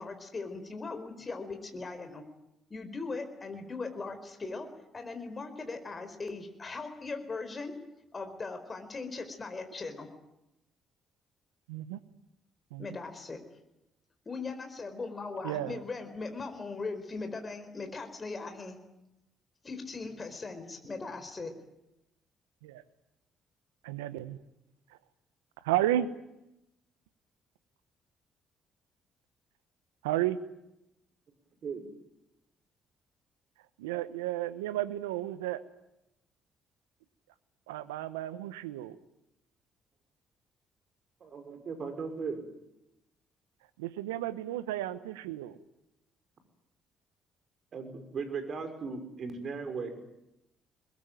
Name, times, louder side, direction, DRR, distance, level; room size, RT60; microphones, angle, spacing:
voice 1, 0.0-2.2 2.7-4.7 4.9-7.7 8.1-10.1 12.8-13.6 14.3-18.8 19.6-21.5, left 3 dB, 35° left, 6 dB, 4.4 m, -39 dB
voice 2, 11.7-12.0 12.7-12.8 15.4-15.8 22.6-22.8 23.8-24.4 25.6-26.1 30.0-30.4 33.8-35.6 37.7-39.0 43.8-45.6, right 13 dB, 85° right, 14 dB, 1.1 m, -32 dB
voice 3, 41.2-42.4 47.7-50.0, right 5 dB, 55° right, 7 dB, 5.4 m, -37 dB
24.0 x 21.5 x 9.2 m, 0.88 s
hypercardioid pair, 50°, 0 cm